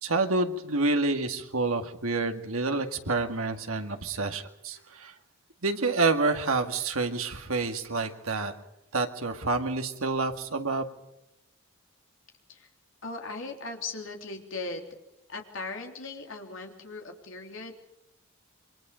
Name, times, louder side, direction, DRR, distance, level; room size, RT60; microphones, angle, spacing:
voice 1, 0.0-5.1 5.6-8.5 8.9-10.9, right 3 dB, 80° right, 5 dB, 2.1 m, -28 dB
voice 2, 13.0-14.9 15.3-17.7, left 3 dB, 65° left, 3 dB, 3.4 m, -38 dB
27.5 x 23.5 x 5.2 m, 0.86 s
head